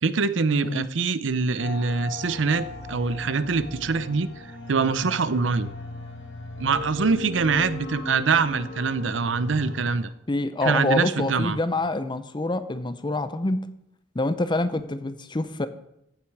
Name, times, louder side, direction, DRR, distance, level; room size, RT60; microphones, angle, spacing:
voice 1, 0.0-4.3 4.7-5.7 6.6-10.1 10.6-11.6, right 4 dB, 75° right, 14 dB, 0.7 m, -24 dB
sound 1, 1.6-10.0, left 3 dB, 75° left, 4.3 m, -38 dB
voice 2, 10.3-13.7 14.1-15.7, left 2 dB, 25° left, 12 dB, 0.6 m, -26 dB
15.0 x 8.7 x 4.7 m, 0.80 s
head